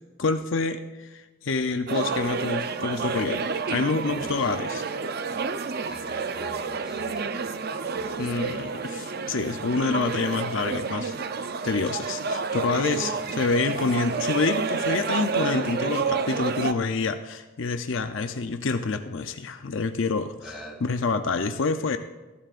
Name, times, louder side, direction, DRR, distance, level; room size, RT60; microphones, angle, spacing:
voice 1, 0.2-4.8 8.2-11.2 11.6-22.0, left 4 dB, 60° left, 8 dB, 0.6 m, -27 dB
sound 1, 1.9-16.7, right 5 dB, 45° right, 0.5 m, -30 dB
voice 2, 4.1-4.5 5.9-7.3 7.9-8.5 12.7-13.1 20.4-20.8, equal, 5° right, -3 dB, 2.8 m, -42 dB
20.5 x 12.5 x 2.5 m, 1.2 s
head